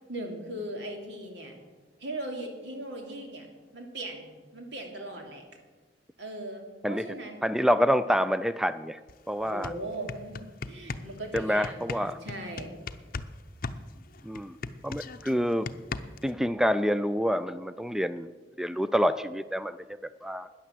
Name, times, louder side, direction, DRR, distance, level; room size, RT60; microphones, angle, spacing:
voice 1, 0.1-1.5 2.0-3.5 3.7-5.4 6.2-7.5 9.4-12.7, right 1 dB, 80° right, 2 dB, 2.8 m, -39 dB
voice 2, 7.4-9.0 9.3-9.7 11.3-12.2 14.2-14.6 14.8-15.7 16.2-18.3 18.6-20.5, equal, 5° right, 13 dB, 0.3 m, -27 dB
sound 1, 9.1-9.2 9.5-13.3 13.6-16.3, left 4 dB, 55° left, 0.6 m, -37 dB
12.5 x 10.0 x 7.5 m, 1.3 s
head